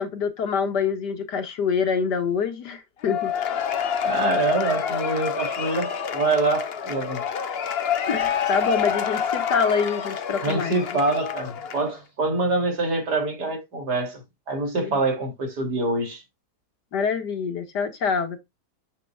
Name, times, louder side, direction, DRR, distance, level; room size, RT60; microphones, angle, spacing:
voice 1, 0.0-3.3 8.1-11.0 14.7-15.0 16.9-18.4, left 6 dB, 80° left, 2.1 m, -26 dB
Cheering / Applause / Crowd, 3.0-12.0, left 8 dB, 45° left, 0.9 m, -27 dB
voice 2, 4.0-7.2 10.4-16.2, right 3 dB, 75° right, 3.4 m, -25 dB
9.8 x 7.6 x 2.3 m
omnidirectional pair, 1.8 m